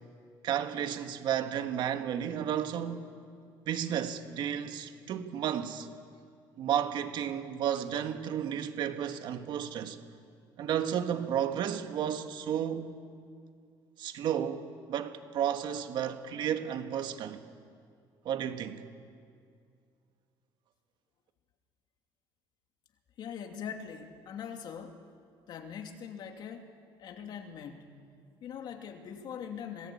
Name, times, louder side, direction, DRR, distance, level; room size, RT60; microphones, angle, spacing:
voice 1, 0.4-3.1 3.7-5.9 6.6-10.0 10.6-13.0 14.0-17.4 18.3-18.8, right 9 dB, 60° right, 1.7 m, -32 dB
voice 2, 23.2-25.0 25.5-26.7 27.0-27.9 28.4-29.9, left 7 dB, 55° left, 2.7 m, -42 dB
27.0 x 19.0 x 8.6 m
cardioid pair, 120°, 9 cm